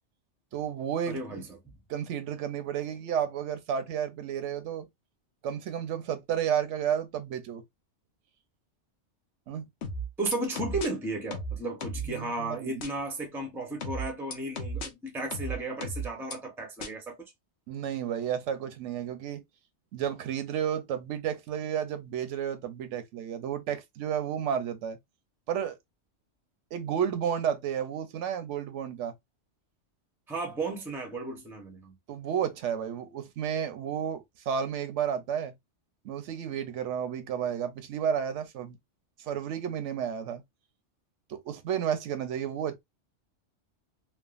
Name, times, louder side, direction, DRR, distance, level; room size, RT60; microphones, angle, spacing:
voice 1, 0.5-1.2 1.9-4.9 5.4-7.6 9.5-9.6 12.1-12.7 17.7-19.4 19.9-25.0 25.5-25.8 26.7-29.1 32.1-35.5 36.0-38.8 39.2-40.4 41.3-42.8, right 8 dB, 80° right, 0.9 m, -32 dB
voice 2, 1.1-1.8 10.2-17.3 30.3-32.0, right 2 dB, 5° right, 0.5 m, -34 dB
sound 1, 9.8-10.9 11.3-12.1 12.8-12.9 13.8-14.9 15.3-16.3 16.8-16.9, right 1 dB, 65° left, 0.9 m, -34 dB
3.4 x 2.0 x 2.3 m
omnidirectional pair, 1.2 m